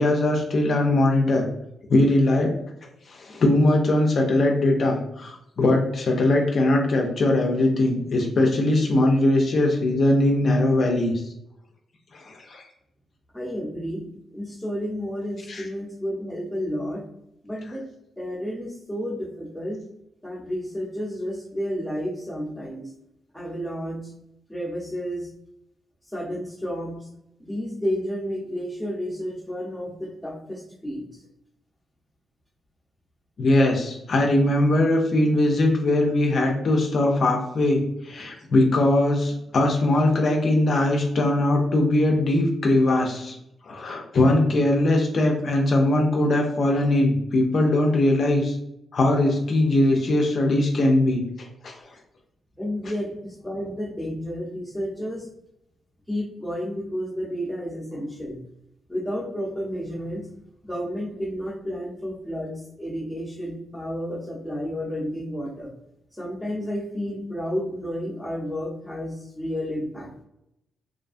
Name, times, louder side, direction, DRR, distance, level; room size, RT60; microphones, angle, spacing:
voice 1, 0.0-1.5 1.9-2.5 2.8-11.3 12.1-12.7 15.5-15.7 33.4-43.4 43.6-48.6 48.9-51.2 51.6-51.8, left 1 dB, 50° left, 1 dB, 0.4 m, -21 dB
voice 2, 13.3-14.0 14.3-17.0 17.4-17.9 18.2-19.8 20.2-22.9 23.3-24.1 24.5-25.3 26.1-27.1 27.4-31.1 52.6-55.3 56.1-58.4 58.9-60.2 60.6-65.7 66.1-70.1, equal, ahead, -3 dB, 0.7 m, -31 dB
2.4 x 2.2 x 2.5 m, 0.80 s
cardioid pair, 110°, 0 cm